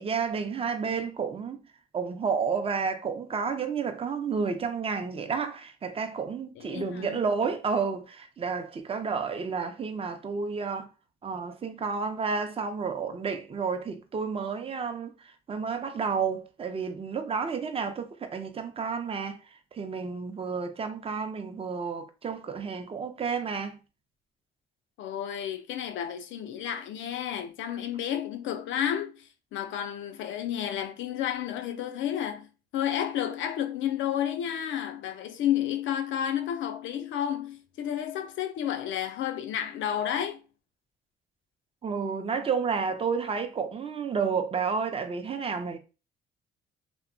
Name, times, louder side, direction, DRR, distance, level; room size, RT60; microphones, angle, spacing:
voice 1, 0.0-1.6 1.9-10.9 11.2-15.1 15.5-19.4 19.7-23.8 41.8-45.8, right 5 dB, 30° right, 0.5 m, -31 dB
voice 2, 6.6-7.2 25.0-40.4, left 10 dB, 75° left, 0.4 m, -31 dB
2.7 x 2.1 x 2.5 m
cardioid pair, 90°, 20 cm